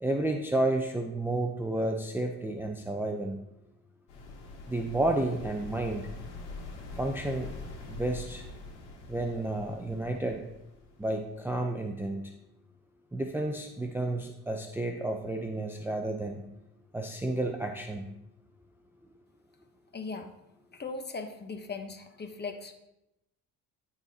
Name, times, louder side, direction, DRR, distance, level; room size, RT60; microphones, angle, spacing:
voice 1, 0.0-3.4 4.7-6.0 6.9-7.5 7.9-8.4 9.1-10.4 11.0-12.3 13.1-16.4 16.9-18.1, right 2 dB, 5° right, 2 dB, 0.5 m, -31 dB
sound 1, 4.1-11.7, left 3 dB, 80° left, 2.1 m, -44 dB
voice 2, 19.9-20.3 20.7-22.7, left 4 dB, 25° left, 6 dB, 1.0 m, -38 dB
12.0 x 4.1 x 2.8 m, 0.89 s
supercardioid pair, 85°, 39 cm